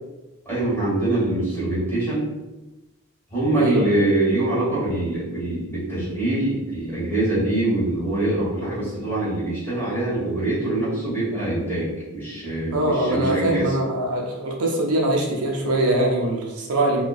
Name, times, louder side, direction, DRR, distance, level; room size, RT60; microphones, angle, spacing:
voice 1, 0.4-2.3 3.3-13.7, right 2 dB, 10° left, -11 dB, 1.4 m, -24 dB
voice 2, 12.7-17.0, right 1 dB, 70° right, -1 dB, 0.4 m, -22 dB
2.4 x 2.2 x 2.3 m, 1.1 s
head